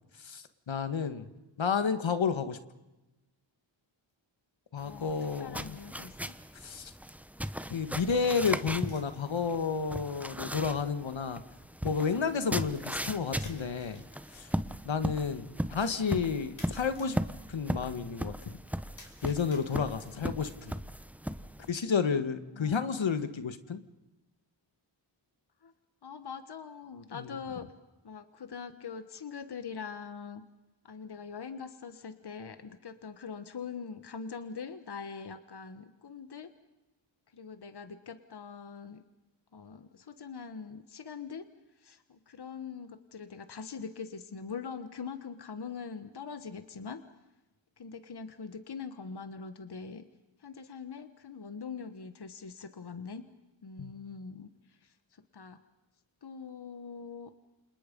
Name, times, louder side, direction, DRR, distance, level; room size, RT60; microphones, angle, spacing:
voice 1, 0.2-1.3 1.6-2.6 4.7-5.8 6.6-6.9 7.7-11.4 11.8-14.0 14.3-14.5 14.8-17.2 17.5-18.6 19.2-20.7 21.7-23.8 27.1-27.3 53.8-53.9, left 6 dB, 75° left, 10 dB, 1.7 m, -31 dB
sound 1, 4.1-4.2 5.2-5.3 8.5-9.1 13.4-14.4 16.6-17.3 19.0-20.1, left 2 dB, 40° left, 5.3 m, -54 dB
voice 2, 4.8-6.3 22.5-23.0 25.6-25.7 26.0-27.7 28.0-30.4 30.8-36.5 37.3-39.0 39.5-41.4 41.8-47.0 47.8-50.0 50.4-53.2 53.6-55.6 56.2-57.3, left 5 dB, 55° left, 10 dB, 1.4 m, -43 dB
sound 2, 4.8-21.7, equal, 5° right, 1.0 m, -38 dB
29.5 x 27.5 x 5.4 m, 1.0 s
wide cardioid pair, 95°, 46 cm